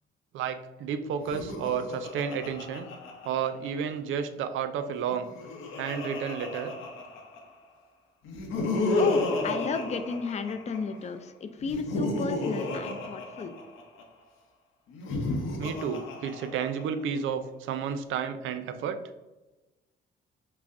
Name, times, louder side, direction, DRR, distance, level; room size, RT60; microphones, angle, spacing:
voice 1, 0.3-2.9 3.3-5.3 5.8-6.7 15.6-19.0, right 7 dB, 80° right, 9 dB, 0.4 m, -31 dB
Laughter, 1.1-3.9 5.0-7.6 8.2-11.0 11.6-14.0 14.9-17.0, left 2 dB, 90° left, 0.7 m, -32 dB
voice 2, 9.0-13.6, left 5 dB, 35° left, 9 dB, 0.4 m, -33 dB
5.7 x 2.0 x 2.5 m, 1.1 s
cardioid pair, 90°, 20 cm